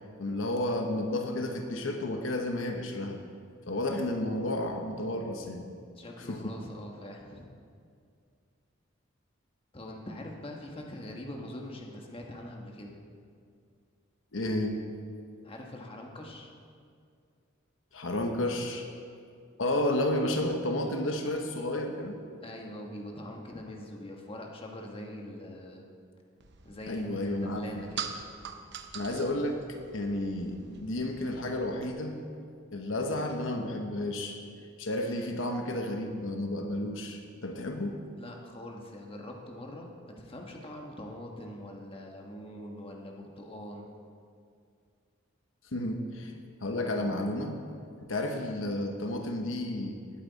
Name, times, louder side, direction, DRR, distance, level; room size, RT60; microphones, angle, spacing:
voice 1, 0.2-3.2 3.7-5.7 6.2-6.4 14.3-14.8 17.9-18.9 19.6-22.2 26.9-27.6 28.9-29.6 29.9-32.2 32.7-34.4 34.8-38.0 45.7-46.3 46.6-47.6 48.0-50.0, left 1 dB, 75° left, 4 dB, 1.0 m, -31 dB
voice 2, 6.0-7.4 9.7-13.0 15.4-16.5 22.4-25.8 26.6-28.1 38.2-43.9, left 1 dB, 30° left, 1 dB, 1.3 m, -43 dB
sound 1, 26.4-31.9, right 7 dB, 60° right, 0.9 m, -44 dB
19.0 x 8.6 x 4.1 m, 2.3 s
head